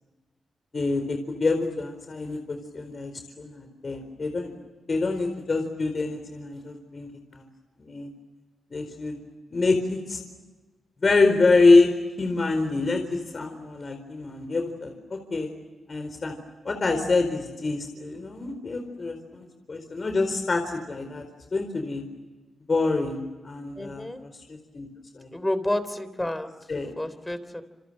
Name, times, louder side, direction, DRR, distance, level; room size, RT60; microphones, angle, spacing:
voice 1, 0.7-4.5 4.9-7.5 7.8-8.1 8.7-9.2 9.5-10.2 11.0-11.9 12.2-15.5 15.9-16.4 16.6-21.2 21.5-22.0 22.7-24.9 25.1-25.3 26.7-26.9, left 3 dB, 45° left, 6 dB, 4.4 m, -26 dB
voice 2, 23.8-24.2 25.3-26.5 27.0-27.6, left 1 dB, 10° left, 13 dB, 3.6 m, -30 dB
28.5 x 27.5 x 7.5 m, 1.2 s
cardioid pair, 60°, 0 cm